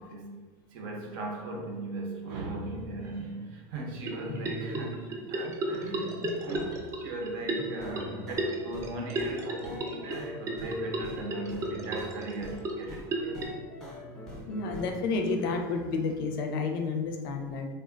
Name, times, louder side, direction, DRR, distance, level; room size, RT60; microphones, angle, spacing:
voice 1, 0.0-13.4, right 2 dB, 60° right, 0 dB, 0.6 m, -38 dB
sound 1, 4.0-13.4, right 1 dB, 25° right, 0.4 m, -35 dB
sound 2, 7.7-14.9, left 1 dB, 5° left, 0.7 m, -43 dB
voice 2, 14.5-17.7, left 4 dB, 80° left, 4 dB, 0.5 m, -30 dB
3.3 x 2.1 x 2.4 m, 1.4 s
supercardioid pair, 140°, 11 cm